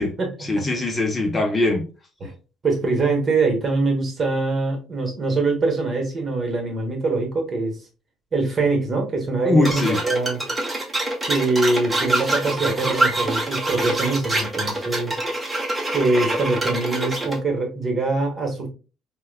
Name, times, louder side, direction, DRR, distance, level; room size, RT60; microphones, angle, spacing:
voice 1, 0.4-1.8 9.4-10.0, left 2 dB, 20° left, 0.7 m, -21 dB
voice 2, 2.6-7.8 8.3-10.4 11.3-15.2 15.9-18.7, right 3 dB, 35° right, 1.2 m, -23 dB
sound 1, 9.6-17.4, right 1 dB, 15° right, 0.9 m, -25 dB
4.6 x 2.2 x 2.3 m
cardioid pair, 105°, 0 cm